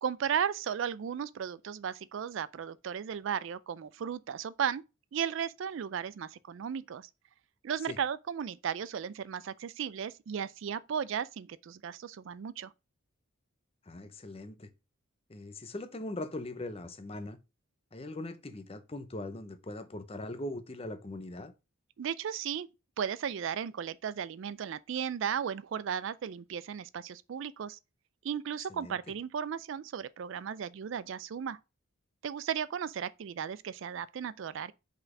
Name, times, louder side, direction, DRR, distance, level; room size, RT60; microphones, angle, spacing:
voice 1, 0.0-4.8 5.1-7.1 7.6-12.7 22.0-22.7 23.0-27.8 28.2-31.6 32.2-34.7, right 8 dB, 60° right, 0.3 m, -35 dB
voice 2, 13.9-14.7 15.3-17.4 17.9-21.5 28.7-29.0, left 1 dB, 25° left, 0.6 m, -40 dB
5.2 x 4.2 x 4.8 m
head